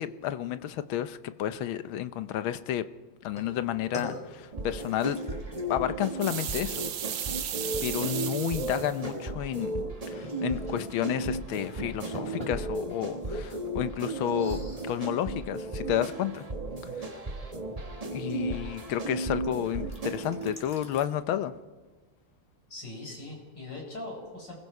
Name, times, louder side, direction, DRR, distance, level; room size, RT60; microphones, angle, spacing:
voice 1, 0.0-2.9 3.2-5.2 5.7-6.8 7.8-16.5 16.8-17.2 18.1-21.6, left 11 dB, 75° left, 12 dB, 1.6 m, -31 dB
sound 1, 3.3-21.1, equal, 15° left, 5.9 m, -48 dB
sound 2, 4.5-20.5, right 2 dB, 25° right, 1.0 m, -35 dB
sound 3, 6.2-9.0, right 9 dB, 80° right, 1.9 m, -35 dB
voice 2, 22.7-24.6, left 2 dB, 55° left, 0 dB, 6.2 m, -41 dB
27.5 x 20.5 x 4.8 m, 1.3 s
omnidirectional pair, 2.3 m